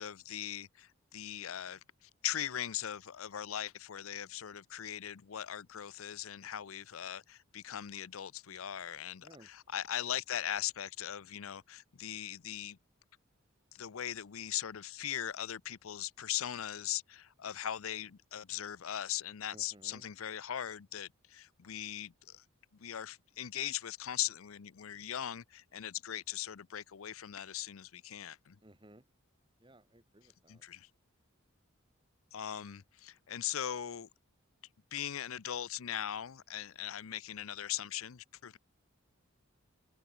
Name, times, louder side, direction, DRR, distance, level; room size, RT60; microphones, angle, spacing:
voice 1, 0.0-12.8 13.7-22.4 22.8-28.6 30.5-30.9 32.3-34.1 34.9-38.6, left 11 dB, 80° left, 0.6 m, -40 dB
voice 2, 19.5-20.0 28.6-29.1 29.6-30.7, right 1 dB, 25° right, 2.4 m, -58 dB
head